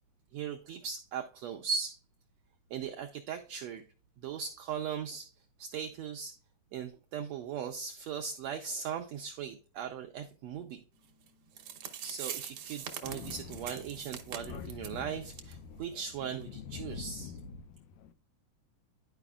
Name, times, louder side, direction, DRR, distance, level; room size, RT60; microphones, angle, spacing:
voice 1, 0.3-2.0 2.7-3.8 4.2-5.3 5.6-6.4 6.7-10.8 12.0-17.4, right 7 dB, 85° right, 1.5 m, -39 dB
sound 1, 11.3-11.4 11.6-15.0 15.3-15.5 15.8-15.9 16.4-16.5, right 9 dB, 70° right, 1.4 m, -42 dB
Thunder, 13.0-18.1, left 6 dB, 80° left, 1.7 m, -45 dB
11.5 x 4.9 x 2.3 m
omnidirectional pair, 3.8 m